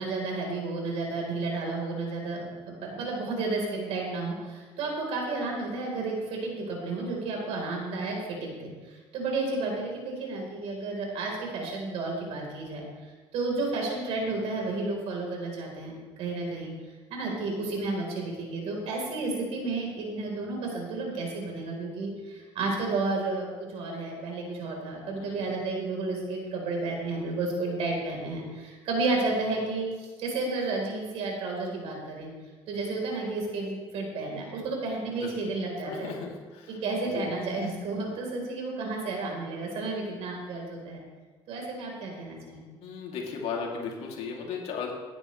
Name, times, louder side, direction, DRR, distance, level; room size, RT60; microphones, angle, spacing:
voice 1, 0.0-12.9 13.3-16.7 17.1-32.3 32.7-36.1 36.7-41.0 41.5-42.6, right 3 dB, 80° right, 0 dB, 3.8 m, -32 dB
voice 2, 25.2-25.5 35.1-35.3 35.9-36.8 37.0-37.3 42.8-44.9, left 5 dB, 80° left, -1 dB, 2.6 m, -36 dB
17.0 x 10.0 x 3.2 m, 1.4 s
cardioid pair, 110°, 10 cm